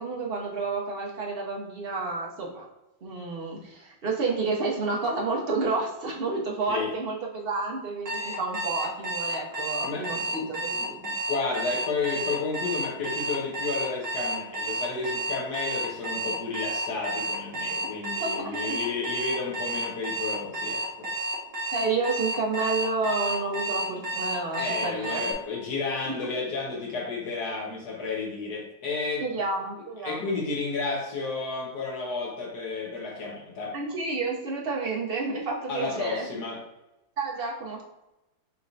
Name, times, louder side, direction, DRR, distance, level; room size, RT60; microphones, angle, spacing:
voice 1, 0.0-2.7 3.0-11.0 18.2-18.8 21.7-25.3 26.1-26.3 29.2-30.2 33.7-36.3 37.2-37.8, right 3 dB, 70° right, -2 dB, 0.5 m, -30 dB
Alarm, 8.1-25.3, right 1 dB, 50° right, 1.2 m, -31 dB
voice 2, 9.8-21.1 24.6-29.3 30.0-33.7 35.7-36.6, left 4 dB, 65° left, -2 dB, 1.6 m, -32 dB
5.8 x 3.1 x 2.6 m, 0.97 s
omnidirectional pair, 1.9 m